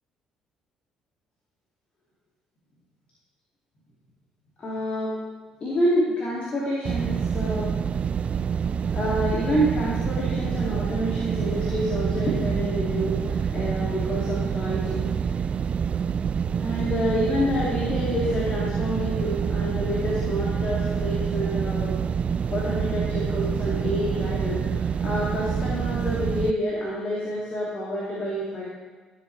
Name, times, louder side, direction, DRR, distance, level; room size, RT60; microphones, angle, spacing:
voice 1, 4.6-5.2 5.6-7.7 8.9-15.2 16.6-21.9 22.5-28.6, equal, 45° left, -6 dB, 2.4 m, -28 dB
sound 1, 6.8-26.5, right 7 dB, 45° right, 0.3 m, -27 dB
14.0 x 8.0 x 3.3 m, 1.4 s
hypercardioid pair, 50°, 3 cm